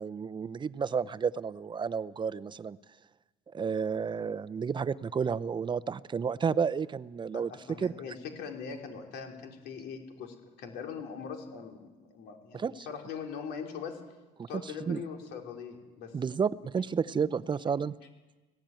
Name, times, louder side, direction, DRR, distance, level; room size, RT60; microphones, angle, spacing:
voice 1, 0.0-2.8 3.5-7.5 7.8-7.9 12.5-12.9 14.4-15.0 16.1-17.9, right 6 dB, 30° right, 15 dB, 0.6 m, -31 dB
voice 2, 7.3-14.0 14.5-16.1 17.1-17.2, left 6 dB, 80° left, 2 dB, 3.7 m, -41 dB
18.5 x 16.5 x 9.0 m, 1.2 s
cardioid pair, 110°, 17 cm